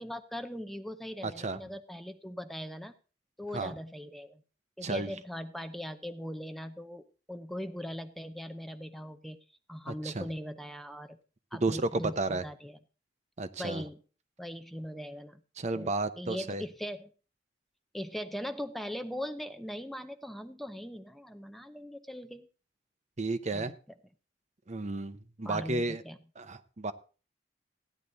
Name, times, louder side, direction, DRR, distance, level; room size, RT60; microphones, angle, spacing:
voice 1, 0.0-2.9 3.4-4.4 4.8-9.4 9.7-11.2 11.5-12.8 13.6-14.0 14.4-15.4 15.7-17.1 17.9-22.5 23.5-23.7 25.4-26.2, equal, ahead, 9 dB, 0.7 m, -40 dB
voice 2, 1.2-1.6 3.5-3.7 4.8-5.1 9.9-10.3 11.5-12.4 13.4-13.8 15.6-16.6 23.2-23.7 24.7-26.0 26.4-26.9, right 2 dB, 40° right, 11 dB, 0.8 m, -32 dB
15.0 x 10.0 x 4.0 m, 0.36 s
head